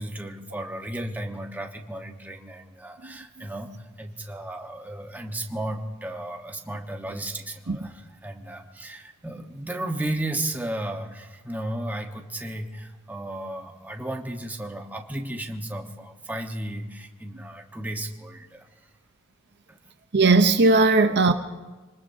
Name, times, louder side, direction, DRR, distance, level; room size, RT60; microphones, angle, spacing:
voice 1, 0.0-18.8 19.7-19.8, right 1 dB, 10° right, 1.2 m, -34 dB
voice 2, 20.1-21.3, right 3 dB, 50° right, 0.8 m, -18 dB
26.5 x 20.0 x 2.8 m
head